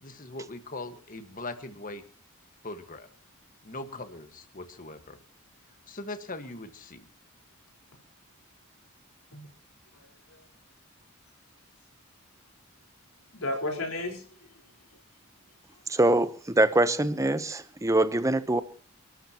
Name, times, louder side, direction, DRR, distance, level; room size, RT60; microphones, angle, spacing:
voice 1, 0.0-2.0 2.6-3.1 3.6-5.2 5.9-7.1, left 2 dB, 35° left, 1.6 m, -40 dB
voice 2, 9.9-10.4 13.3-14.7 15.7-16.0, left 2 dB, 70° left, 4.4 m, -35 dB
voice 3, 15.9-18.6, right 1 dB, 15° right, 0.8 m, -24 dB
29.5 x 12.5 x 3.0 m
head